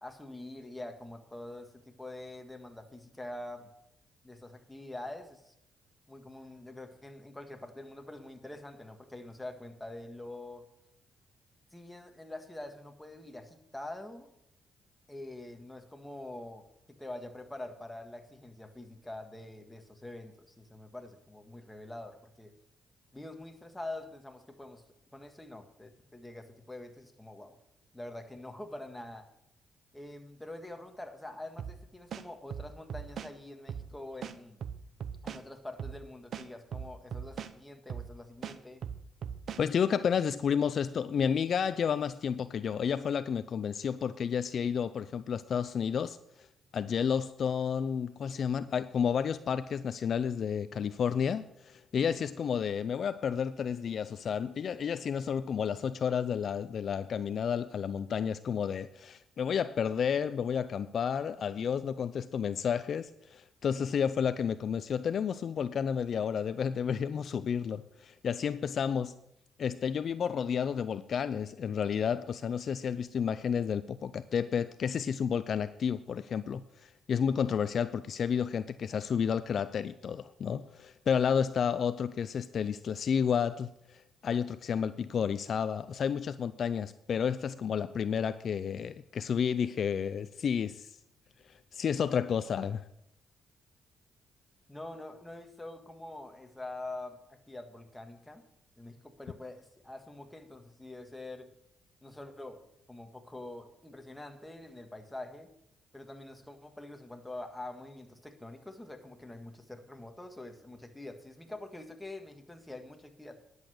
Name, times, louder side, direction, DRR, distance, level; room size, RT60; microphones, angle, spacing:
voice 1, 0.0-3.7 4.2-5.5 6.1-10.6 11.7-14.3 15.1-16.6 17.0-22.5 23.1-24.8 25.1-27.5 27.9-29.3 29.9-34.6 35.2-38.8 94.7-98.4 98.8-101.5 102.0-102.6 102.9-105.5 105.9-113.4, left 2 dB, 10° left, 5 dB, 1.7 m, -45 dB
sound 1, 31.6-31.8 32.1-33.3 33.7-33.9 34.2-35.4 35.8-36.0 36.3-37.5 37.9-38.1 38.4-39.6, right 8 dB, 60° right, 0.8 m, -39 dB
voice 2, 39.6-46.5 46.7-69.1 69.6-90.9 91.7-92.8, left 7 dB, 55° left, 13 dB, 0.4 m, -31 dB
11.0 x 8.0 x 6.6 m, 0.77 s
cardioid pair, 90°, 0 cm